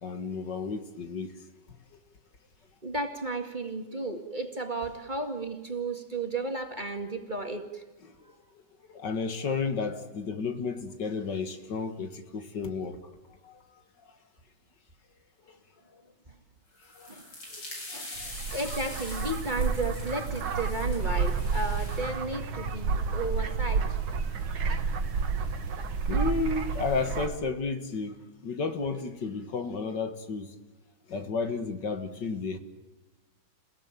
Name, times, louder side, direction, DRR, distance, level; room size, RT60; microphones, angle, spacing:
voice 1, 0.0-1.3 8.2-8.3 8.9-13.1 13.4-13.6 14.0-14.1 15.5-15.6 15.9-16.0 17.0-17.1 18.0-18.3 26.1-28.2 28.4-30.5 31.1-32.6, left 4 dB, 60° left, 2.2 m, -32 dB
voice 2, 2.8-7.8 17.1-17.3 17.9-18.1 18.5-24.0, right 2 dB, 25° right, 2.2 m, -33 dB
sound 1, 16.8-22.2, left 1 dB, 80° left, 7.5 m, -44 dB
sound 2, 18.2-27.3, right 5 dB, 85° right, 2.4 m, -30 dB
28.5 x 17.0 x 9.1 m
omnidirectional pair, 2.1 m